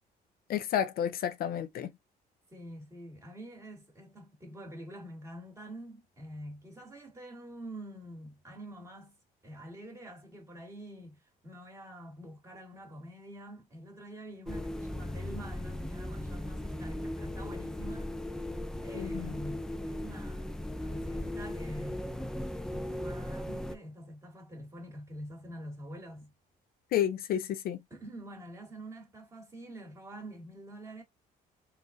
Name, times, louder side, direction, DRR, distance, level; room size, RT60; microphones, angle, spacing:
voice 1, 0.5-1.9 18.9-19.3 26.9-27.8, left 10 dB, 60° left, 0.5 m, -31 dB
voice 2, 2.5-9.2 9.4-18.4 18.8-22.1 22.6-26.3 27.9-31.0, right 1 dB, 15° right, 2.1 m, -46 dB
sound 1, 14.5-23.8, left 1 dB, 5° left, 0.4 m, -37 dB
3.9 x 2.5 x 3.8 m
cardioid pair, 110°, 17 cm